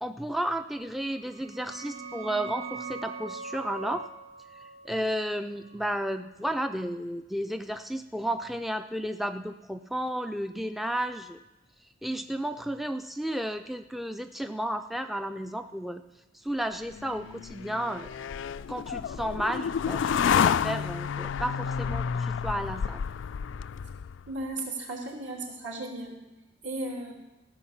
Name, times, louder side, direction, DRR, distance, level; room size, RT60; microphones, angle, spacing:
voice 1, 0.0-4.1 4.8-11.4 12.0-16.0 16.4-18.1 18.7-23.0, right 1 dB, ahead, 8 dB, 0.3 m, -32 dB
sound 1, 1.1-6.5, right 4 dB, 45° right, 0.6 m, -42 dB
sound 2, 16.9-24.3, left 7 dB, 75° left, 0.3 m, -30 dB
voice 2, 24.3-26.2 26.6-27.1, right 2 dB, 75° right, -2 dB, 2.9 m, -35 dB
16.0 x 6.4 x 7.3 m, 1.0 s
head